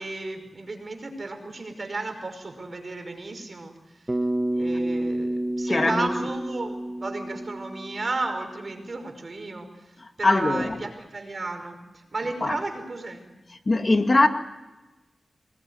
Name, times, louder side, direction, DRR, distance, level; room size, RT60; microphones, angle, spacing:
voice 1, 0.0-3.7 4.6-9.7 10.2-13.3, right 3 dB, 50° right, 5.5 m, -33 dB
Bass guitar, 4.1-8.4, right 1 dB, 25° right, 1.7 m, -29 dB
voice 2, 5.7-6.1 10.2-10.8 12.4-12.6 13.7-14.3, left 2 dB, 40° left, 2.1 m, -21 dB
25.5 x 20.5 x 9.7 m
wide cardioid pair, 65°, 0 cm